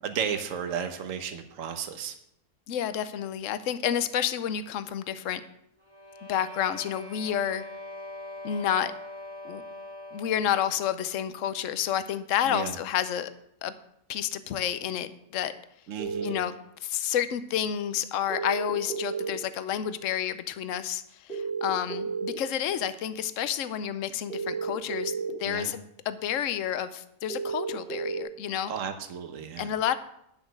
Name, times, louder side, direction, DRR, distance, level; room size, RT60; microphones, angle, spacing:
voice 1, 0.0-2.1 12.5-12.8 15.9-16.3 25.5-25.7 28.7-29.7, right 7 dB, 65° right, 7 dB, 1.3 m, -33 dB
voice 2, 2.7-5.4 6.3-7.6 8.4-8.9 9.4-9.6 10.1-13.3 13.6-13.7 14.1-15.5 16.2-16.5 16.8-25.1 25.4-28.7 29.6-30.0, left 10 dB, 65° left, 13 dB, 1.0 m, -30 dB
sound 1, 5.8-10.5, left 2 dB, 30° left, 1.8 m, -42 dB
sound 2, 16.0-16.3 18.3-19.3 21.3-22.3 24.3-25.3 27.3-28.2, right 5 dB, 50° left, 2.3 m, -32 dB
10.0 x 7.2 x 6.3 m, 0.76 s
omnidirectional pair, 1.5 m